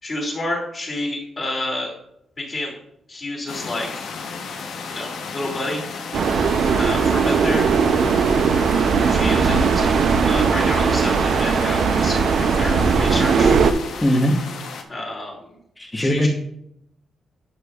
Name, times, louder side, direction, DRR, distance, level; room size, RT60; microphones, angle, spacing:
voice 1, 0.0-1.9 2.4-2.7 3.1-4.1 4.9-5.8 6.8-7.7 9.1-9.9 10.2-13.6 14.9-15.3 16.0-16.3, left 1 dB, 30° left, -2 dB, 2.3 m, -29 dB
sound 1, 3.5-14.8, left 5 dB, 75° left, 0.9 m, -34 dB
sound 2, 6.1-13.7, right 5 dB, 60° right, 0.5 m, -18 dB
voice 2, 14.0-14.4 15.8-16.3, equal, 15° left, 3 dB, 0.9 m, -19 dB
11.0 x 6.7 x 2.4 m, 0.77 s
wide cardioid pair, 150°, 0 cm